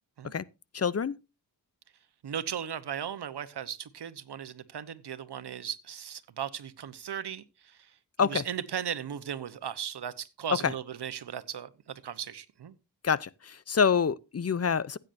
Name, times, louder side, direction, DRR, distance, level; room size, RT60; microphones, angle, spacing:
voice 1, 0.7-1.1 8.2-8.4 10.6-10.7 13.0-13.3 13.7-15.0, left 6 dB, 40° left, 0.6 m, -26 dB
voice 2, 2.2-7.8 8.2-12.7, right 8 dB, 75° right, 1.0 m, -37 dB
15.5 x 9.1 x 2.7 m
cardioid pair, 55°, 40 cm